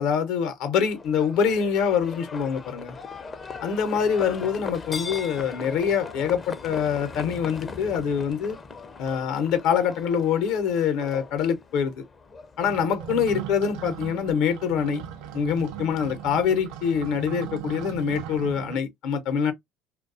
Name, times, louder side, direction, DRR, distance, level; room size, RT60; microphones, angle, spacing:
voice 1, 0.0-3.0 3.6-8.6 9.0-12.0 12.6-15.0 15.3-19.5, left 7 dB, 70° left, 0.7 m, -25 dB
Livestock farm animals working animals, 0.8-17.3, left 4 dB, 30° left, 0.5 m, -41 dB
sound 1, 12.6-18.8, right 10 dB, 75° right, 0.4 m, -38 dB
2.3 x 2.2 x 2.5 m
supercardioid pair, 85°, 0 cm